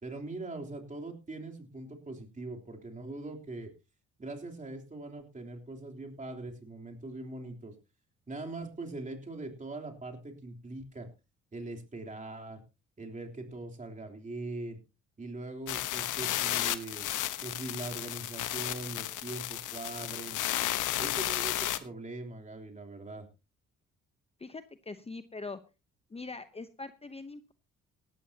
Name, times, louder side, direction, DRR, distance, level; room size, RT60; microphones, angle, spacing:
voice 1, 0.0-3.7 4.2-7.7 8.3-11.1 11.5-12.6 13.0-14.8 15.2-17.1 17.4-20.4 21.0-23.3, right 2 dB, 25° right, 2 dB, 3.4 m, -41 dB
sound 1, 15.7-21.8, left 13 dB, 80° left, 1.1 m, -33 dB
voice 2, 24.4-25.6 26.1-27.5, left 3 dB, 20° left, 11 dB, 0.8 m, -42 dB
17.5 x 13.5 x 2.9 m, 0.29 s
cardioid pair, 90°, 30 cm